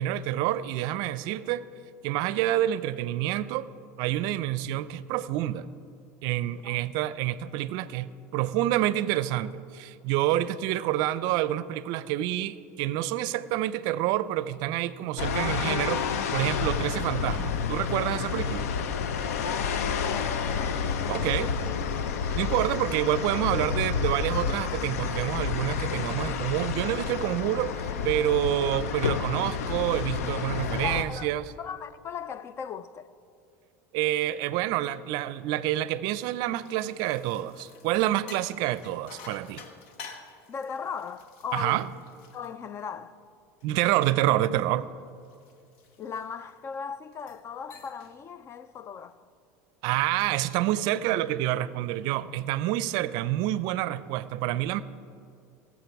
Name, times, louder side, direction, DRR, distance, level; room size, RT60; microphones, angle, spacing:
voice 1, 0.0-1.6 2.0-3.7 4.0-5.7 6.2-16.1 16.3-18.7 21.1-21.5 22.3-31.4 33.9-39.6 41.5-41.9 43.6-44.9 49.8-54.8, right 13 dB, 65° right, 0.5 m, -28 dB
sound 1, 15.2-31.0, left 6 dB, 90° left, 0.6 m, -30 dB
voice 2, 19.5-21.7 30.8-31.3 31.6-33.1 40.5-41.9 42.3-43.2 46.0-49.3, left 6 dB, 35° left, 0.5 m, -38 dB
sound 2, 36.4-43.2 43.6-46.6 47.1-47.5 47.7-48.2 48.5-48.8 49.9-50.5, left 5 dB, 70° left, 1.1 m, -50 dB
18.0 x 7.4 x 4.7 m
supercardioid pair, 110°, 8 cm